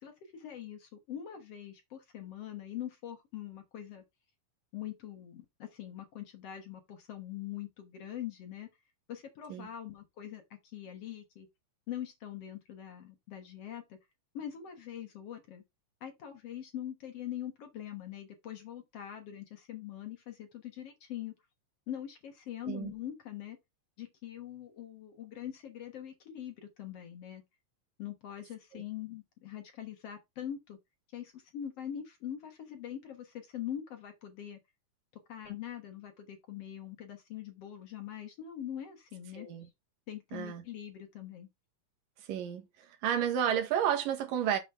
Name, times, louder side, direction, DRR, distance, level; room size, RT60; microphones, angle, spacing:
voice 1, 0.0-4.0 4.7-8.7 9.1-11.5 11.9-14.0 14.3-15.6 16.0-21.3 21.9-23.6 24.0-27.4 28.0-30.8 31.1-34.6 35.3-39.5 40.1-41.5, left 10 dB, 55° left, 2.0 m, -43 dB
voice 2, 39.3-39.7 40.3-40.6 42.3-44.6, right 9 dB, 85° right, 3.0 m, -31 dB
6.7 x 4.0 x 5.7 m
omnidirectional pair, 3.8 m